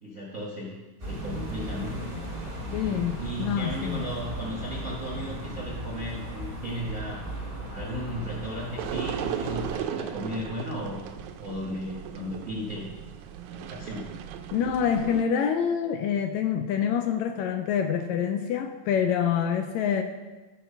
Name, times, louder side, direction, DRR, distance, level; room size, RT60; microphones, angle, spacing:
voice 1, 0.0-0.8 1.1-2.1 2.4-7.3 7.7-11.0 11.4-12.9 13.5-14.2, equal, 50° right, -3 dB, 0.9 m, -35 dB
sound 1, 1.0-9.7, equal, 20° right, 0.9 m, -36 dB
voice 2, 2.7-4.0 14.5-20.0, left 8 dB, 85° left, 6 dB, 1.6 m, -26 dB
sound 2, 8.8-15.2, right 9 dB, 80° right, 1.8 m, -36 dB
12.0 x 4.5 x 5.5 m, 1.2 s
omnidirectional pair, 3.8 m